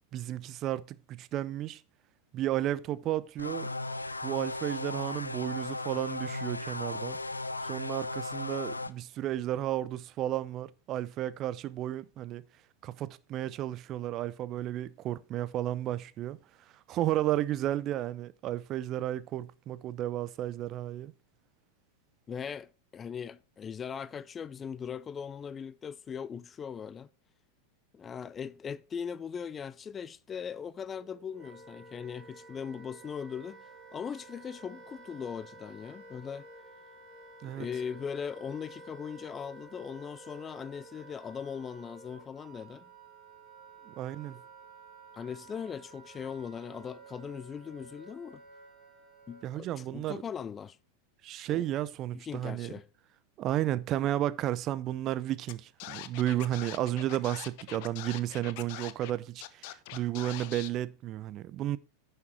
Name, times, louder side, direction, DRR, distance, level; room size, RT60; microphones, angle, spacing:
voice 1, 0.1-1.8 2.3-3.7 4.2-7.2 7.6-12.4 12.8-16.4 16.9-21.1 37.4-37.7 43.9-44.4 49.4-50.2 51.2-52.7 53.4-61.8, right 13 dB, 35° right, 0.5 m, -33 dB
sound 1, 3.4-8.9, left 2 dB, 80° left, 0.6 m, -36 dB
voice 2, 22.3-27.1 27.9-33.6 33.9-36.5 37.4-42.8 45.1-48.4 49.3-50.8 51.5-51.7 52.1-52.9, left 7 dB, 20° left, 0.4 m, -39 dB
Wind instrument woodwind instrument, 30.8-49.7, right 3 dB, 15° right, 3.9 m, -52 dB
Scratching (performance technique), 55.5-55.6 55.8-59.1 59.4-60.7, left 15 dB, 45° left, 0.8 m, -43 dB
10.5 x 6.6 x 4.5 m
figure-of-eight pair, 90°, 0 cm